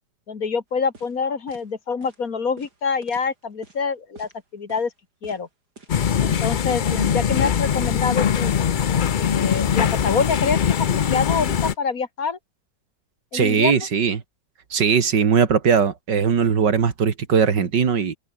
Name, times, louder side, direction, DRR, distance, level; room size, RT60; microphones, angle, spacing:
voice 1, 0.3-4.9 5.2-5.5 6.2-8.5 9.2-12.4 13.3-13.9, left 5 dB, 55° left, 2.3 m, -26 dB
sound 1, 0.9-1.2 1.5-1.7 2.0-2.2 2.6-3.8 4.2-4.4 4.7-4.9 5.2-5.4 5.8-6.0 6.3-6.5 6.8-7.1 7.4-7.5 7.9-8.1 8.4-8.7 9.0-9.1 9.5-9.7 10.0-10.2 10.6-11.8, right 3 dB, 70° right, 5.2 m, -46 dB
sound 2, 5.9-11.7, left 8 dB, 85° left, 0.4 m, -21 dB
voice 2, 13.3-14.2 14.7-18.2, right 6 dB, 90° right, 2.7 m, -19 dB
open air
omnidirectional pair, 1.8 m